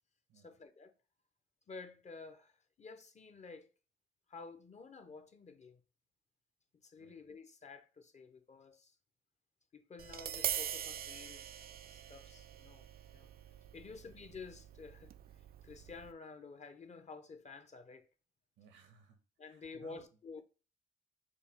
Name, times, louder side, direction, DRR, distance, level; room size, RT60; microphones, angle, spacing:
voice 1, 0.3-0.9 1.7-3.7 4.3-5.8 6.8-8.9 9.7-12.9 13.1-13.3 13.7-15.1 15.6-18.0 19.4-20.4, left 4 dB, 35° left, 0.8 m, -51 dB
Tap, 10.0-16.1, right 10 dB, 50° right, 0.4 m, -43 dB
voice 2, 18.6-20.0, right 6 dB, 90° right, 1.2 m, -62 dB
6.5 x 2.3 x 3.5 m
cardioid pair, 90°, 20 cm